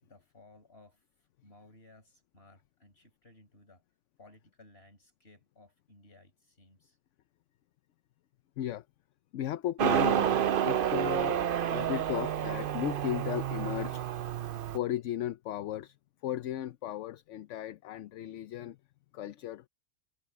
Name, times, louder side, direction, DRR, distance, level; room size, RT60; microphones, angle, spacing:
voice 1, 0.0-3.8 4.2-7.0, left 2 dB, 50° left, 5.6 m, -59 dB
voice 2, 9.3-14.1 14.7-16.0 16.2-18.8 19.1-19.6, left 11 dB, 75° left, 0.9 m, -36 dB
Motorcycle, 9.8-14.8, right 9 dB, 55° right, 0.7 m, -29 dB
omnidirectional pair, 1.3 m